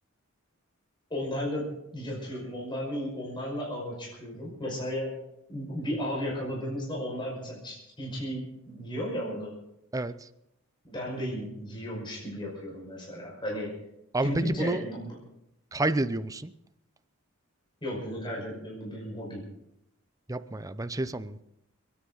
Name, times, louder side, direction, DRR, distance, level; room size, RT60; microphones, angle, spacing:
voice 1, 1.1-1.7 1.9-5.2 5.5-9.5 10.8-13.8 14.2-15.1 17.8-19.4, equal, 25° left, -3 dB, 5.7 m, -34 dB
voice 2, 9.9-10.3 14.1-14.8 15.7-16.5 20.3-21.4, right 2 dB, 15° right, 12 dB, 0.6 m, -29 dB
30.0 x 10.0 x 4.0 m, 0.82 s
head